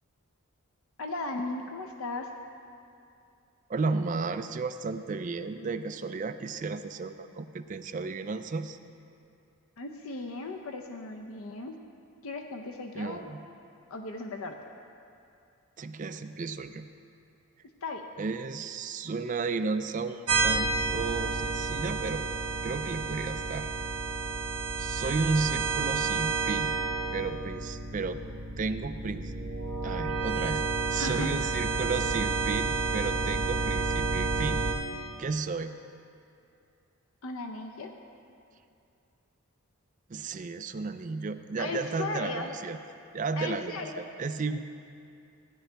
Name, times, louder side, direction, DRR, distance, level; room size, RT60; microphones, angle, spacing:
voice 1, 1.0-2.3 9.8-11.7 12.2-13.3 13.9-14.6 17.8-18.0 25.0-25.6 31.0-31.5 37.2-37.9 41.6-42.5 43.4-44.0, left 3 dB, 70° left, 4 dB, 0.6 m, -37 dB
voice 2, 3.7-8.8 12.9-13.4 15.8-16.9 18.2-22.3 22.6-23.7 24.8-26.7 27.1-28.2 28.6-29.3 29.8-30.6 30.9-34.6 35.2-35.8 40.1-42.8 43.1-44.7, right 4 dB, 35° right, 9 dB, 0.3 m, -33 dB
sound 1, 20.3-34.7, right 4 dB, 80° right, 1.3 m, -30 dB
15.5 x 10.0 x 3.4 m, 2.5 s
head